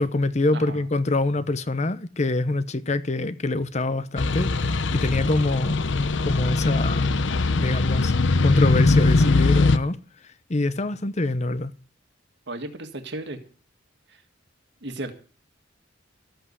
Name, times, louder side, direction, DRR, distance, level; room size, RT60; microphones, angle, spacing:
voice 1, 0.0-5.8 6.2-7.1 7.5-8.1 8.4-10.0 10.2-11.7, left 2 dB, 35° left, 0.8 m, -25 dB
voice 2, 0.5-0.8 12.5-13.4 14.8-15.1, right 2 dB, 60° right, 1.9 m, -34 dB
sound 1, 4.2-9.8, left 3 dB, 70° left, 0.8 m, -21 dB
13.5 x 8.1 x 8.2 m
head